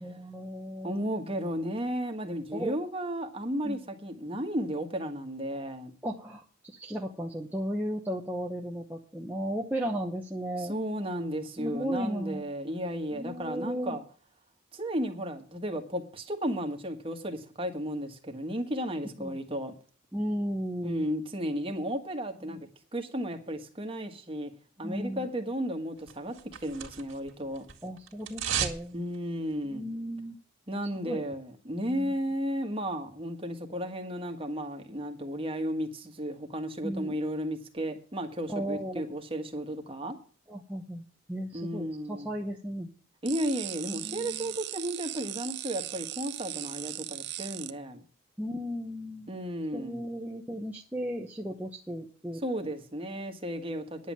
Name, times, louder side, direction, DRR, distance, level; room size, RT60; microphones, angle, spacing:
voice 1, 0.0-1.0 2.5-2.8 3.6-3.8 6.0-10.8 11.6-12.5 13.1-14.0 19.2-19.4 20.1-21.1 22.5-22.6 24.8-25.3 27.8-29.0 29.7-30.4 31.0-31.3 31.9-32.1 36.8-37.2 38.5-39.1 40.5-41.0 41.3-42.9 43.9-44.6 48.4-49.3 49.7-52.4, equal, 10° right, -2 dB, 0.9 m, -35 dB
voice 2, 0.8-5.9 10.6-14.0 14.7-19.7 20.8-24.5 24.8-26.4 26.6-27.6 28.9-29.8 30.7-40.2 41.5-42.3 43.2-48.0 49.3-50.1 52.4-54.1, equal, 25° right, 4 dB, 1.5 m, -34 dB
Paper ripping, 26.1-27.3 27.5-28.8 29.1-29.2, right 8 dB, 70° right, 2.0 m, -33 dB
sound 1, 43.3-47.7, right 15 dB, 55° right, 0.6 m, -38 dB
10.0 x 7.3 x 7.4 m, 0.41 s
head